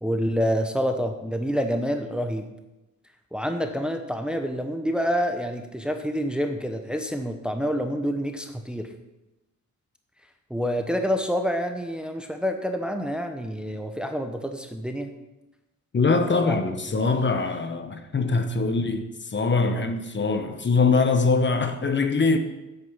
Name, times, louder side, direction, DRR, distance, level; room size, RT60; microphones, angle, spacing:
voice 1, 0.0-2.4 3.3-8.9 10.5-15.1 16.4-16.6 19.7-19.8, equal, 5° right, 0.9 m, -27 dB
voice 2, 15.9-22.4, left 4 dB, 35° left, 1.0 m, -23 dB
9.3 x 8.1 x 5.6 m
cardioid pair, 110°, 31 cm